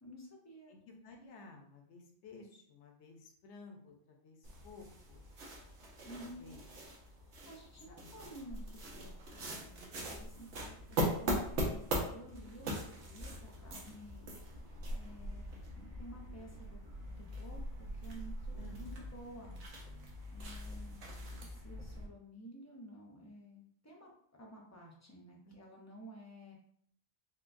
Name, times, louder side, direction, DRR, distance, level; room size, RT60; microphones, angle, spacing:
voice 1, 0.0-0.8 6.0-6.5 7.3-14.3 14.9-15.4 15.7-16.8 17.2-19.6 20.3-24.1 24.4-26.5, right 1 dB, 25° left, -1 dB, 0.4 m, -53 dB
voice 2, 0.7-5.2 6.2-6.6 7.9-8.3 18.6-18.9 25.4-25.6, left 3 dB, 80° left, 3 dB, 1.0 m, -55 dB
sound 1, 4.4-22.1, equal, 85° right, 1.1 m, -41 dB
sound 2, 10.0-17.1, left 1 dB, 40° right, 0.8 m, -56 dB
4.2 x 2.2 x 2.5 m, 0.63 s
omnidirectional pair, 1.2 m